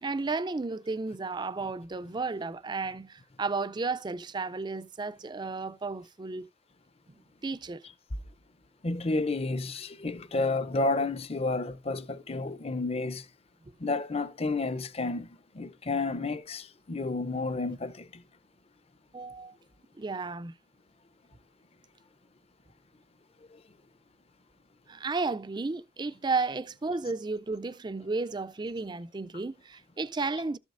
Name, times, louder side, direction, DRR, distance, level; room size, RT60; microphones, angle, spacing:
voice 1, 0.0-6.5 7.1-7.9 19.1-19.6 20.0-20.5 24.9-30.6, right 3 dB, 20° right, 0.4 m, -33 dB
voice 2, 8.8-13.3 13.8-18.2 23.5-23.6, left 3 dB, 30° left, 0.6 m, -31 dB
13.5 x 7.2 x 2.5 m
head